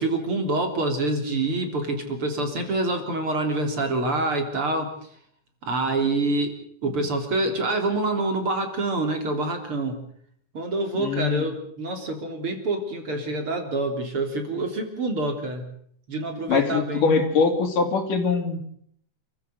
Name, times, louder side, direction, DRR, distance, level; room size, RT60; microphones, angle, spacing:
voice 1, 0.0-4.9 5.6-6.5 6.8-10.0 10.5-15.7 16.1-17.1, right 2 dB, 45° right, 5 dB, 4.2 m, -26 dB
voice 2, 11.0-11.5 16.5-18.6, left 5 dB, 85° left, 6 dB, 4.7 m, -22 dB
29.5 x 15.0 x 7.9 m, 0.65 s
omnidirectional pair, 3.6 m